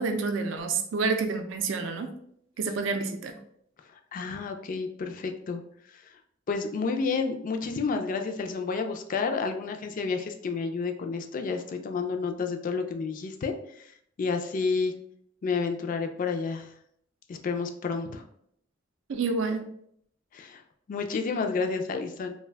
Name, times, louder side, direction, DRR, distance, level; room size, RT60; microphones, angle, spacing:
voice 1, 0.0-2.1 2.6-3.3 19.1-19.7, right 4 dB, 70° right, 6 dB, 0.4 m, -28 dB
voice 2, 3.9-5.6 6.5-13.9 14.2-14.9 15.4-16.7 17.3-18.2 20.3-20.6 20.9-22.3, left 4 dB, 45° left, 5 dB, 0.3 m, -30 dB
2.4 x 2.2 x 3.3 m, 0.70 s
head